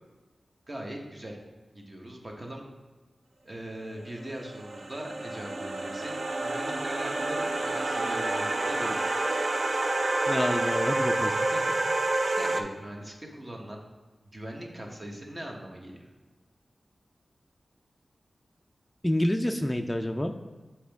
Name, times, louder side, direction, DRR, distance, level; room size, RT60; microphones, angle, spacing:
voice 1, 0.7-1.4 1.7-2.6 3.4-8.9 11.1-11.7 12.3-13.8 14.2-16.1, right 1 dB, 30° right, 0 dB, 1.0 m, -40 dB
sound 1, 4.2-12.6, right 2 dB, 55° right, 0.5 m, -28 dB
voice 2, 10.3-11.3 19.0-20.3, left 1 dB, 15° left, 4 dB, 0.3 m, -28 dB
7.1 x 4.3 x 3.5 m, 1.3 s
wide cardioid pair, 105°, 0 cm